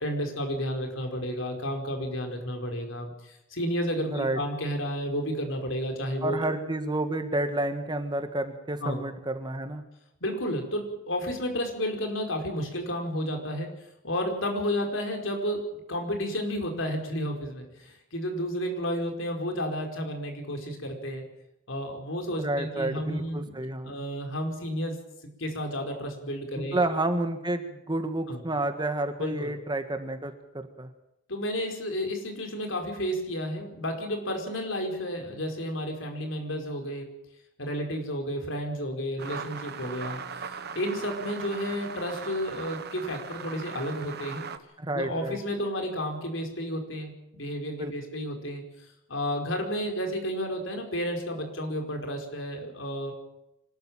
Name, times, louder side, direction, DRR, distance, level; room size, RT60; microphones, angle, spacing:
voice 1, 0.0-6.5 8.8-9.0 10.2-13.7 14.0-21.2 21.7-23.6 23.8-25.0 25.4-26.8 28.3-28.4 29.2-29.5 31.3-37.1 37.6-44.5 44.9-53.1, equal, 70° left, 4 dB, 5.0 m, -32 dB
voice 2, 6.2-9.8 22.4-24.0 26.5-30.9 44.8-45.4 47.8-47.9, right 2 dB, 20° right, 8 dB, 1.7 m, -30 dB
sound 1, 39.2-44.6, right 6 dB, 55° right, 1.4 m, -39 dB
25.5 x 13.5 x 9.1 m, 0.86 s
head